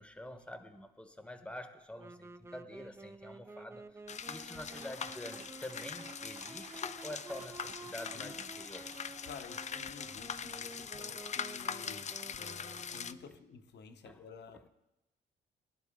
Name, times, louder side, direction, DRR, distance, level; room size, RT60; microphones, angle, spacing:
voice 1, 0.0-4.0 4.3-8.9 14.1-14.2, left 1 dB, 5° left, 1.2 m, -47 dB
Wind instrument woodwind instrument, 1.9-13.6, right 3 dB, 15° right, 0.5 m, -52 dB
sound 1, 4.1-13.1, left 7 dB, 35° left, 0.5 m, -42 dB
Dog, 4.7-9.6, right 4 dB, 40° right, 1.9 m, -56 dB
voice 2, 9.2-14.7, left 6 dB, 60° left, 1.1 m, -52 dB
19.5 x 11.5 x 3.8 m
cardioid pair, 90°, 20 cm